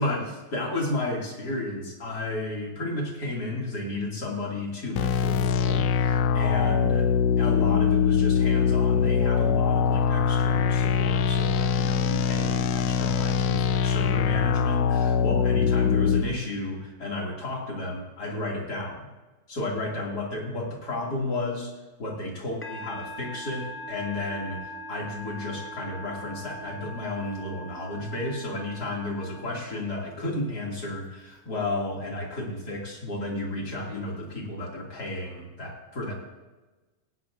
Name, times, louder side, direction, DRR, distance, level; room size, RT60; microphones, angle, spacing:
voice 1, 0.0-7.1 7.4-19.1 19.5-21.7 22.0-36.1, left 2 dB, 35° left, -2 dB, 2.8 m, -32 dB
sound 1, 5.0-16.2, left 7 dB, 80° left, 1.4 m, -23 dB
Musical instrument, 22.6-30.2, equal, 10° left, 0.5 m, -41 dB
17.5 x 17.0 x 2.6 m, 1.2 s
omnidirectional pair, 3.3 m